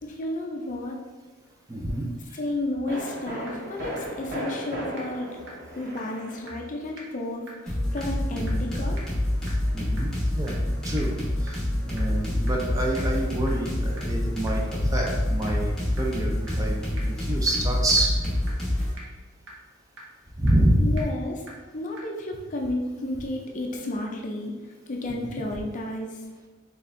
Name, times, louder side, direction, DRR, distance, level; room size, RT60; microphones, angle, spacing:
voice 1, 0.0-1.0 2.3-5.3 5.8-9.0 20.8-21.4 21.7-24.5 24.9-26.2, left 1 dB, 35° left, 1 dB, 0.4 m, -32 dB
voice 2, 1.7-2.0 2.3-2.4 8.3-8.4 9.7-10.1 10.4-10.6 10.8-11.1 11.4-18.3 20.4-21.0, right 1 dB, 15° right, -1 dB, 0.5 m, -27 dB
sound 1, 1.9-2.1 2.9-7.0 7.2-7.3, equal, 45° right, 1.4 m, -36 dB
sound 2, 3.5-3.6 4.0-4.1 4.5-4.6 5.0-5.1 5.5-5.6 6.0-6.1 6.5-6.6 7.0-7.1 7.5-7.6 8.0-8.1 8.5-8.6 9.0-9.1 9.5-9.6 10.0-10.1 10.5-10.6 11.0-11.1 11.5-11.6 12.0-12.1 12.5-12.6 13.0-13.1 13.5-13.6 14.0-14.1 14.5-14.6 15.0-15.1 15.5-15.6 16.0-16.1 16.5-16.6 17.0-17.1 17.5-17.6 18.0-18.1 18.5-18.6 19.0-19.1 19.5-19.6 20.0-20.1 20.5-20.6 21.0-21.1 21.5-21.6 22.0-22.1, right 2 dB, 60° right, 0.9 m, -42 dB
sound 3, 7.7-18.9, left 1 dB, 5° left, 1.1 m, -27 dB
4.3 x 3.5 x 2.6 m, 1.3 s
head